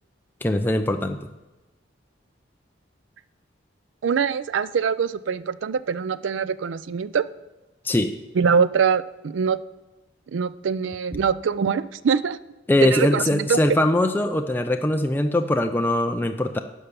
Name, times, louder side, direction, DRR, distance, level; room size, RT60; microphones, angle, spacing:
voice 1, 0.4-1.3 7.8-8.1 12.7-16.6, left 1 dB, 10° left, 5 dB, 0.4 m, -21 dB
voice 2, 4.0-7.2 8.3-9.6 10.3-12.4 12.8-13.6, right 6 dB, 85° right, 16 dB, 0.4 m, -23 dB
10.0 x 5.4 x 6.7 m, 1.1 s
head